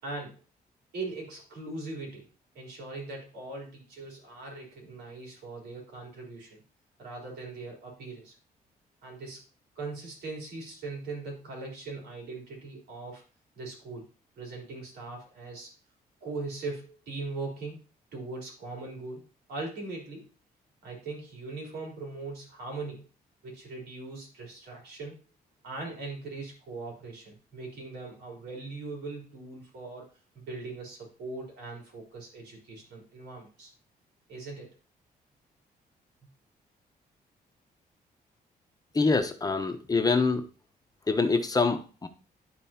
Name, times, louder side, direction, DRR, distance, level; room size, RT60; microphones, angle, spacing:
voice 1, 0.0-0.4 0.9-2.2 2.6-6.6 7.0-8.4 9.0-9.4 9.8-13.2 13.6-14.1 14.4-15.7 16.2-17.8 18.1-20.3 20.8-23.1 23.4-25.2 25.6-30.1 30.3-33.7 34.3-34.7, right 3 dB, 90° right, -1 dB, 3.6 m, -40 dB
voice 2, 38.9-40.4 41.1-42.1, left 4 dB, 25° left, 7 dB, 0.8 m, -25 dB
12.0 x 4.4 x 2.8 m, 0.34 s
cardioid pair, 115°, 16 cm